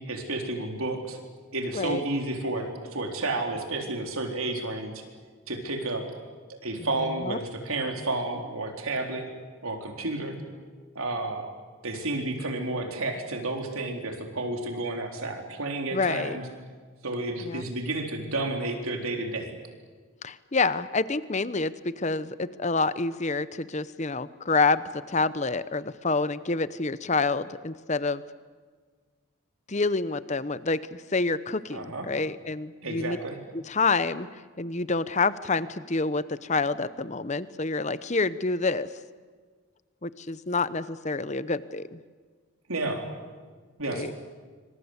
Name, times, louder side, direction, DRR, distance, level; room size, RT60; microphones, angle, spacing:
voice 1, 0.1-1.2 1.5-5.0 5.5-6.1 6.5-9.2 9.6-10.4 11.0-11.4 11.8-16.4 17.0-19.5 31.7-32.1 32.8-33.4 42.7-43.1 43.8-44.1, right 2 dB, 80° right, 3 dB, 4.0 m, -31 dB
voice 2, 6.8-7.4 15.9-16.4 17.4-17.6 20.2-28.2 29.7-33.2 33.5-34.3 34.6-38.9 40.0-42.0 43.9-44.1, left 3 dB, 30° left, 15 dB, 0.8 m, -28 dB
26.0 x 25.5 x 8.2 m, 1.5 s
head